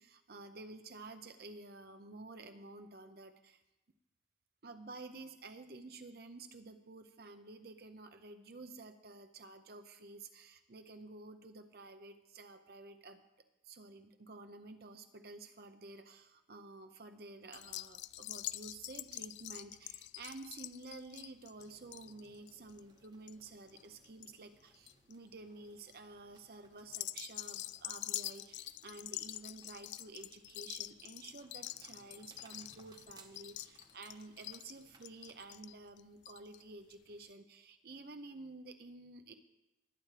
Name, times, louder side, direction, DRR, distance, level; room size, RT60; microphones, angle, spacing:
voice 1, 0.0-3.6 4.6-13.3 13.6-39.3, right 3 dB, 60° right, 8 dB, 0.7 m, -51 dB
sound 1, 17.5-24.3 24.6-25.1 25.6-26.0 26.8-36.6 36.9-37.0 37.2-37.3, left 15 dB, 80° left, 0.4 m, -45 dB
sound 2, 21.5-35.5, right 3 dB, 25° right, 0.9 m, -66 dB
20.0 x 8.7 x 3.3 m, 0.95 s
head